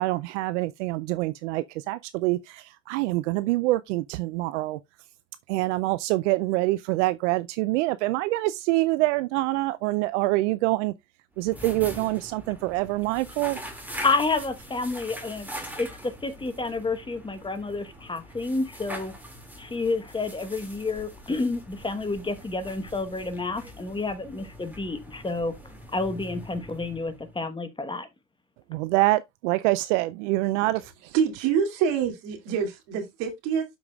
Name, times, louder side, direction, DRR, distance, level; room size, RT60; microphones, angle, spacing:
voice 1, 0.0-4.8 5.5-10.9 11.4-13.6 28.7-30.9, right 19 dB, 80° right, 0.5 m, -25 dB
sound 1, 11.3-27.5, equal, 5° right, 2.2 m, -42 dB
voice 2, 14.0-15.5 15.8-19.1 19.6-25.6 25.9-28.1, left 3 dB, 15° left, 1.1 m, -29 dB
voice 3, 31.1-33.7, right 7 dB, 65° right, 2.6 m, -26 dB
12.5 x 4.9 x 2.3 m
supercardioid pair, 105°, 36 cm